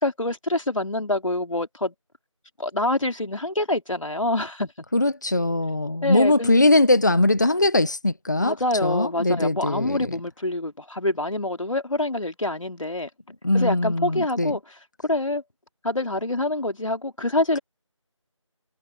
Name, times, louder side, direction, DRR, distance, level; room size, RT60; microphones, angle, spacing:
voice 1, 0.0-1.9 2.6-4.9 6.0-6.6 8.4-13.1 13.5-14.8 15.0-15.4 15.8-17.6, left 2 dB, 75° left, 3.5 m, -26 dB
voice 2, 4.9-8.5 8.8-10.1 13.4-14.5, left 2 dB, 35° left, 1.5 m, -21 dB
figure-of-eight pair, 175°, 17 cm